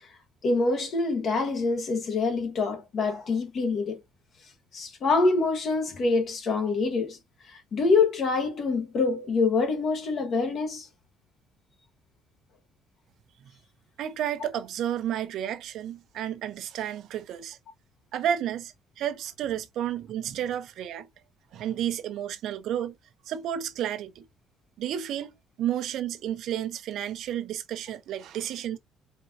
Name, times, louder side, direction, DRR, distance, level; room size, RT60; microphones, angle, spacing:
voice 1, 0.4-4.0 4.7-7.2 7.5-10.9, left 3 dB, 45° left, 1.4 m, -25 dB
voice 2, 14.0-17.6 18.1-21.1 21.5-22.9 23.3-24.2 24.8-28.8, right 10 dB, 60° right, 0.9 m, -31 dB
4.4 x 3.8 x 2.7 m
cardioid pair, 150°, 0 cm